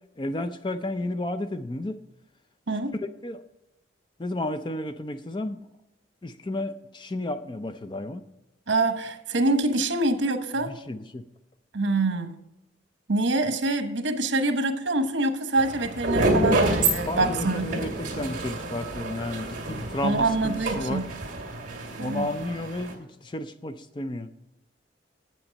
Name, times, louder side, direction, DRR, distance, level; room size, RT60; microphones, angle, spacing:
voice 1, 0.2-2.0 2.9-3.4 4.2-5.6 6.2-8.2 10.6-11.2 17.1-21.0 22.0-24.3, left 1 dB, 25° left, 9 dB, 0.4 m, -32 dB
voice 2, 8.7-10.7 11.7-12.4 13.1-17.7 20.0-21.0 22.0-22.3, right 2 dB, 80° right, 8 dB, 1.1 m, -25 dB
sound 1, 15.6-22.9, right 2 dB, 45° right, 2.3 m, -28 dB
8.8 x 7.5 x 5.2 m, 0.91 s
head